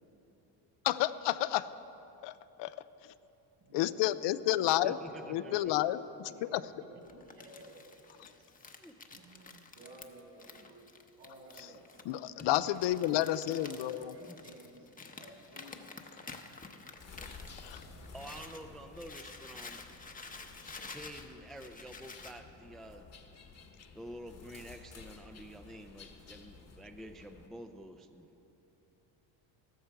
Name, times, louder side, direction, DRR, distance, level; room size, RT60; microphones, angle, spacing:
voice 1, 0.8-1.7 2.2-2.7 3.7-5.0 5.3-6.0 6.4-6.6 12.1-14.1 17.6-17.8, left 14 dB, 65° left, 14 dB, 0.5 m, -30 dB
voice 2, 3.6-4.1 4.4-5.4 5.7-5.9 6.3-8.3 9.1-10.8 11.2-12.0 13.5-14.9 15.1-15.9, right 1 dB, 70° right, 0 dB, 3.7 m, -54 dB
voice 3, 4.8-5.7 8.8-9.0 14.3-14.4 18.1-19.8 20.9-23.1 23.9-28.3, equal, ahead, 6 dB, 0.4 m, -48 dB
Crumpling crinkling, 7.0-18.6 18.9-22.4, left 4 dB, 20° left, 0.8 m, -50 dB
sound 1, 17.0-27.5, left 4 dB, 35° left, 1.2 m, -53 dB
14.0 x 13.5 x 4.6 m, 3.0 s
cardioid pair, 110°, 46 cm